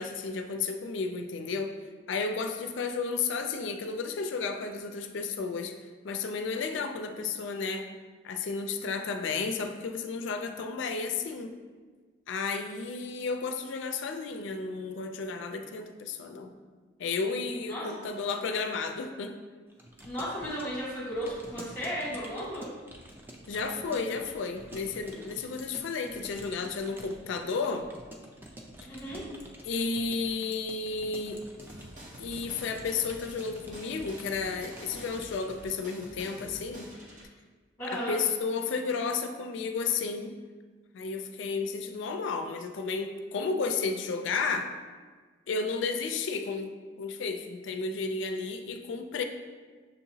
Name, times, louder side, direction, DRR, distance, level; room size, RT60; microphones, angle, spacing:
voice 1, 0.0-1.7 2.1-5.7 6.0-7.8 8.2-11.5 12.3-16.5 17.0-19.3 23.5-27.9 29.6-31.6 32.2-36.9 37.8-40.4 40.9-44.7 45.5-46.7 47.0-49.2, left 4 dB, 70° left, 6 dB, 0.4 m, -32 dB
Keyboard (musical) / Computer keyboard, 19.7-35.8, right 1 dB, 10° right, 0.3 m, -49 dB
voice 2, 20.0-22.7 28.9-29.2 37.8-38.1, equal, 10° left, -7 dB, 1.4 m, -34 dB
sound 1, 31.6-37.3, equal, 40° right, 0.8 m, -48 dB
6.6 x 2.8 x 2.7 m, 1.4 s
head